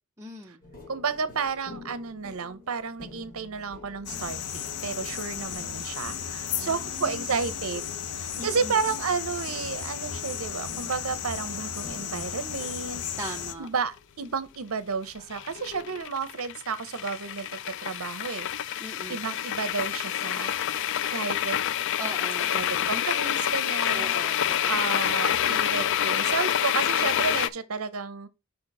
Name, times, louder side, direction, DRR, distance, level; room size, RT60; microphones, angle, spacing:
voice 1, 0.2-0.6 5.4-5.9 6.6-7.1 8.3-8.8 13.2-13.7 18.8-19.2 22.0-22.9 23.9-24.7, right 2 dB, 15° right, 0.7 m, -40 dB
sound 1, 0.6-16.0, left 3 dB, 40° left, 2.6 m, -49 dB
voice 2, 0.9-18.5 19.1-20.6 21.1-21.6 22.5-28.3, right 5 dB, 65° right, 0.7 m, -32 dB
sound 2, 4.1-13.5, left 8 dB, 90° left, 0.7 m, -34 dB
sound 3, 10.9-11.0 15.3-27.5, left 10 dB, 55° left, 0.4 m, -27 dB
5.3 x 4.4 x 5.4 m
head